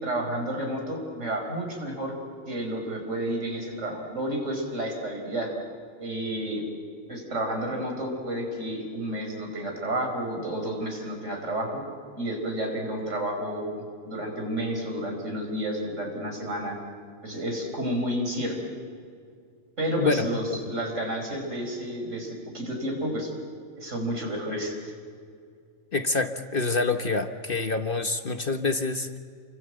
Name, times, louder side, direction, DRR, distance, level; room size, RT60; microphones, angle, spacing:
voice 1, 0.0-2.1 2.5-5.5 6.0-6.6 7.1-11.8 12.2-16.8 17.2-18.6 19.8-23.3 23.8-24.9, right 1 dB, 65° right, 2 dB, 5.5 m, -31 dB
voice 2, 20.0-20.3 25.9-29.2, left 3 dB, 45° left, 7 dB, 1.2 m, -26 dB
29.5 x 24.5 x 7.8 m, 2.2 s
omnidirectional pair, 1.4 m